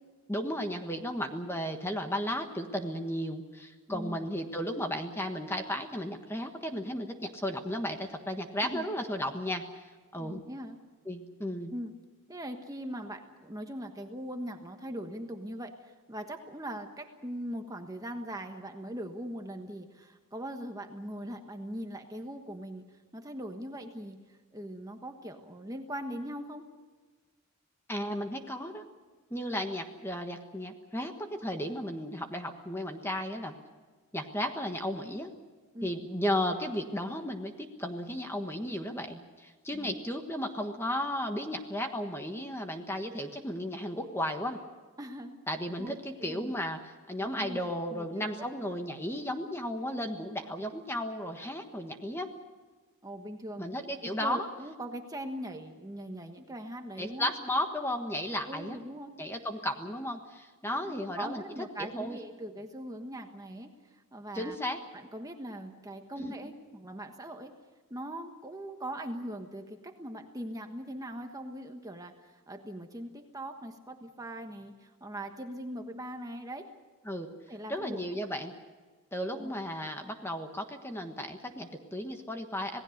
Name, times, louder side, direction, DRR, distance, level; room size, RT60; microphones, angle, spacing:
voice 1, 0.3-9.8 10.1-10.4 11.1-11.7 27.9-28.8 29.3-33.5 34.1-35.3 35.8-44.6 45.5-52.3 53.6-54.5 57.0-58.8 59.2-61.4 61.9-62.2 64.3-64.8 66.2-66.3 77.0-77.3 77.7-78.5 79.1-82.8, left 1 dB, 10° left, 5 dB, 1.4 m, -34 dB
voice 2, 3.9-4.3 8.6-8.9 10.2-10.8 11.7-11.9 12.3-26.6 35.7-35.9 39.7-39.9 45.0-45.4 45.8-46.5 47.3-47.6 47.9-48.5 53.0-53.7 54.0-57.3 58.5-59.1 60.7-64.6 64.9-67.5 67.9-76.7 77.5-78.0 79.3-79.5, right 1 dB, 15° right, 5 dB, 1.3 m, -41 dB
27.0 x 18.5 x 6.6 m, 1.4 s
head